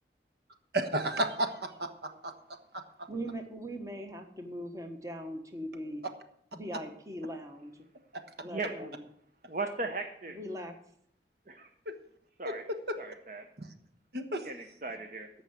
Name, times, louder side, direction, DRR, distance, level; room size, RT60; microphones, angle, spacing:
voice 1, 0.7-2.3 11.9-12.0 13.6-13.7 14.1-14.5, right 1 dB, 65° right, 6 dB, 1.3 m, -32 dB
voice 2, 3.1-6.0 6.5-7.9 8.4-9.0 10.3-10.7, equal, 20° right, 5 dB, 1.2 m, -40 dB
voice 3, 8.5-8.9 9.5-10.4 11.5-11.7 12.4-12.6 13.0-13.5 14.4-15.3, right 3 dB, 45° right, 5 dB, 0.9 m, -37 dB
14.5 x 5.6 x 7.9 m, 0.69 s
head